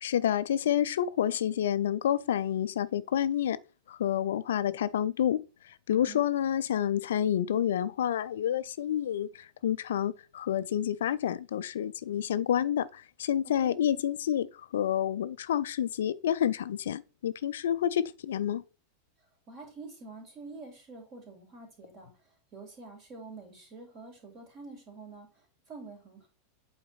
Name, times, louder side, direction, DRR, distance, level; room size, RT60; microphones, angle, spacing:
voice 1, 0.0-3.6 3.9-18.6, left 10 dB, 60° left, 0.3 m, -29 dB
voice 2, 5.9-6.2 13.6-13.7 19.5-22.1 22.5-25.3 25.7-26.3, right 3 dB, 35° right, 3.1 m, -47 dB
8.3 x 3.9 x 4.1 m
figure-of-eight pair, 90°, 0 cm